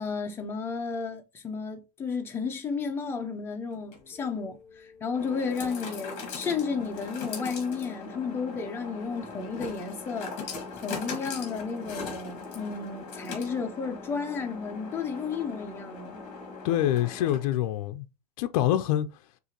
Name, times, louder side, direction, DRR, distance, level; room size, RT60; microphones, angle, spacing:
voice 1, 0.0-10.6 10.8-16.2, left 5 dB, 10° left, 0.6 m, -33 dB
sound 1, 3.7-17.7, left 4 dB, 35° left, 1.9 m, -40 dB
voice 2, 16.6-18.0 18.4-19.1, left 12 dB, 55° left, 0.5 m, -25 dB
6.6 x 2.5 x 2.9 m
supercardioid pair, 165°, 21 cm